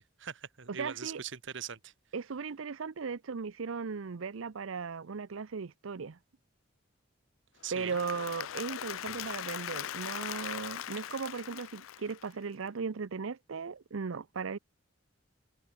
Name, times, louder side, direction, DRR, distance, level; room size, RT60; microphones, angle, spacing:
voice 1, 0.0-1.9 7.6-8.0, right 7 dB, 65° right, 1.3 m, -41 dB
voice 2, 0.7-1.2 2.1-6.2 7.7-14.6, right 5 dB, 85° right, 0.6 m, -37 dB
Applause / Crowd, 7.6-12.6, left 11 dB, 85° left, 0.4 m, -40 dB
head